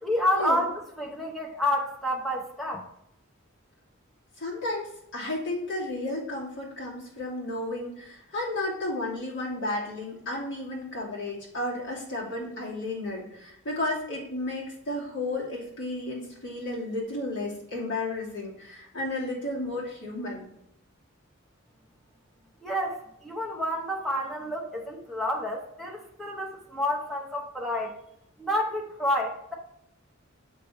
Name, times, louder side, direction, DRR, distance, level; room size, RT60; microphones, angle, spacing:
voice 1, 0.0-2.9 22.6-28.0 28.4-29.5, left 1 dB, ahead, -2 dB, 0.8 m, -29 dB
voice 2, 4.4-20.5, left 2 dB, 60° left, -5 dB, 2.8 m, -33 dB
6.8 x 5.0 x 4.4 m, 0.76 s
head